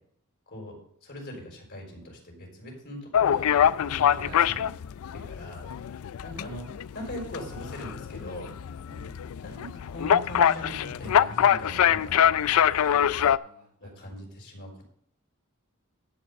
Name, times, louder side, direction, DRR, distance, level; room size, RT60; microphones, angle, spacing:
voice 1, 0.5-4.6 5.1-5.6 6.2-6.7 6.9-8.6 9.4-12.4 13.8-14.8, equal, 55° left, 1 dB, 4.0 m, -41 dB
sound 1, 3.1-13.4, left 9 dB, 80° left, 0.4 m, -24 dB
voice 2, 4.1-4.9 8.9-9.3 12.7-14.2, right 1 dB, 80° right, 0 dB, 4.3 m, -49 dB
11.5 x 5.2 x 6.9 m, 0.65 s
head